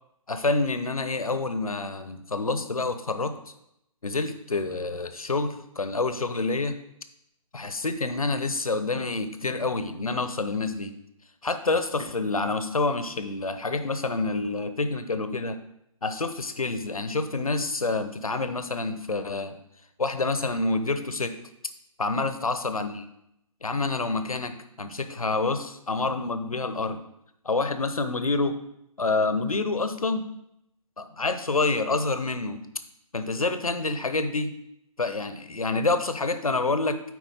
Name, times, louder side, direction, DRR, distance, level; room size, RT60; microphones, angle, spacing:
voice 1, 0.3-3.4 4.0-6.8 7.5-11.0 11.4-15.6 16.0-19.6 20.0-21.4 22.0-23.1 23.6-27.0 27.4-28.6 29.0-30.3 31.0-32.6 33.1-34.6 35.0-37.0, left 3 dB, 75° left, 10 dB, 0.8 m, -27 dB
9.2 x 4.3 x 4.2 m, 0.80 s
figure-of-eight pair, 140°, 18 cm